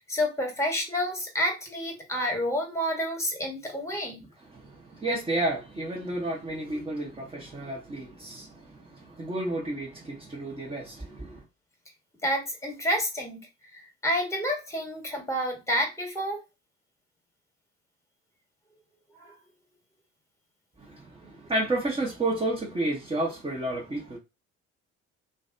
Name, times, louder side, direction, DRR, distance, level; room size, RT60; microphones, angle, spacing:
voice 1, 0.1-4.2 12.2-13.4 13.7-16.4 19.2-19.3, equal, 10° left, 1.3 m, -29 dB
voice 2, 4.4-11.4 20.8-24.2, right 2 dB, 15° right, 1.0 m, -31 dB
2.6 x 2.2 x 2.6 m
figure-of-eight pair, 55°, 35 cm